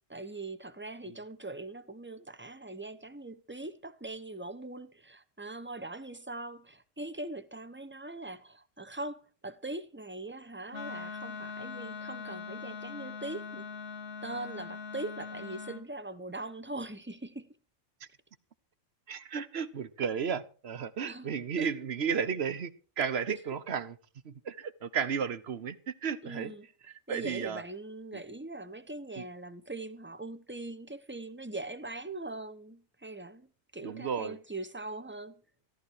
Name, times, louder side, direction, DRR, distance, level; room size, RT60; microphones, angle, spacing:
voice 1, 0.1-13.7 14.2-17.6 21.0-21.7 23.3-23.5 26.2-26.7 27.1-35.4, right 2 dB, 10° right, 0.7 m, -41 dB
Wind instrument woodwind instrument, 10.7-15.9, left 5 dB, 50° left, 1.1 m, -41 dB
voice 2, 19.1-23.9 24.2-26.5 27.1-27.6 29.2-29.3 33.8-34.4, right 6 dB, 55° right, 1.1 m, -33 dB
14.5 x 13.5 x 4.8 m
omnidirectional pair, 1.3 m